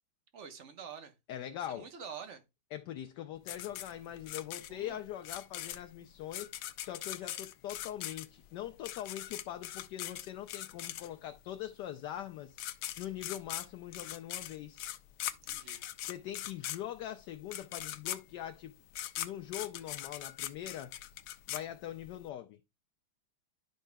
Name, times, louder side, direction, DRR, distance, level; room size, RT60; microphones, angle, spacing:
voice 1, 0.3-1.1 1.6-2.4 4.7-5.0 7.3-7.4 15.4-15.8, right 7 dB, 45° right, 1.0 m, -47 dB
voice 2, 1.3-1.9 2.7-6.5 6.8-12.6 13.0-14.9 16.0-18.7 19.2-20.9 21.5-22.6, left 11 dB, 75° left, 1.0 m, -42 dB
sound 1, 3.5-11.4 12.2-12.3 12.5-22.2, left 13 dB, 90° left, 1.5 m, -41 dB
11.5 x 5.4 x 2.2 m
omnidirectional pair, 2.3 m